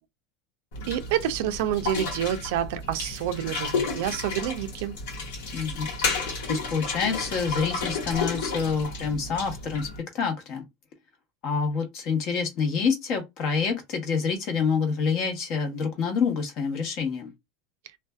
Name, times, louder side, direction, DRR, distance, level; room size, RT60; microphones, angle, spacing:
sound 1, 0.7-10.0, left 4 dB, 80° left, 1.2 m, -32 dB
voice 1, 0.9-4.9, right 11 dB, 70° right, 0.4 m, -28 dB
voice 2, 5.5-5.9 6.5-9.9 10.1-10.6 11.4-17.3, left 5 dB, 50° left, 1.0 m, -27 dB
2.5 x 2.2 x 2.3 m
supercardioid pair, 135°, 0 cm